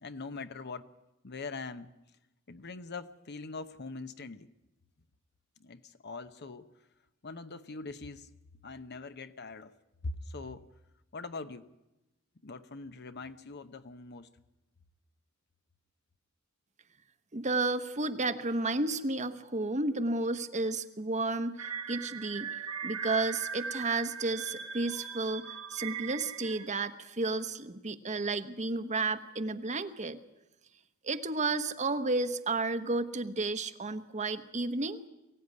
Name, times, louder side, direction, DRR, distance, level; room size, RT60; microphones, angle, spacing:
voice 1, 0.0-0.9 1.2-1.9 2.5-4.5 5.6-6.7 7.2-8.3 8.6-9.7 10.0-10.7 11.1-11.7 12.4-14.3, left 3 dB, 55° left, 11 dB, 0.9 m, -42 dB
voice 2, 17.3-22.5 22.8-30.2 31.0-35.1, right 3 dB, 35° right, 10 dB, 1.1 m, -32 dB
sound 1, 21.6-26.7, right 6 dB, 75° right, 1.5 m, -40 dB
23.0 x 16.0 x 9.6 m, 0.95 s
head